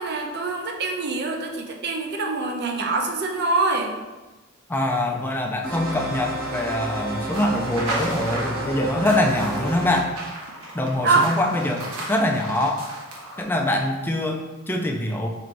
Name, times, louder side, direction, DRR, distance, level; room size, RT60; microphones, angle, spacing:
voice 1, 0.0-3.9 11.0-11.3, right 3 dB, 50° right, 2 dB, 0.5 m, -24 dB
voice 2, 4.7-10.1 10.7-12.8 13.4-15.3, left 1 dB, 10° left, 2 dB, 0.3 m, -24 dB
sound 1, 5.6-10.0, right 1 dB, 70° right, 1.2 m, -31 dB
sound 2, 7.3-13.4, right 1 dB, 90° right, 0.9 m, -35 dB
4.5 x 3.0 x 2.5 m, 1.2 s
head